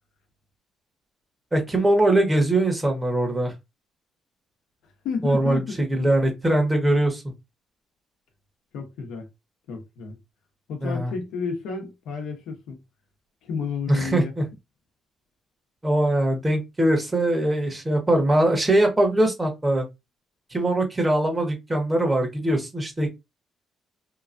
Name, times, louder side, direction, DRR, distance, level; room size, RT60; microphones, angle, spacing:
voice 1, 1.5-3.5 5.2-7.3 10.8-11.1 13.9-14.4 15.8-19.9 20.5-23.1, right 1 dB, 15° right, 1.2 m, -22 dB
voice 2, 5.0-5.7 8.7-9.3 9.7-10.2 10.7-12.8 13.4-14.3, left 5 dB, 90° left, 0.8 m, -31 dB
2.9 x 2.3 x 2.5 m
cardioid pair, 90°, 0 cm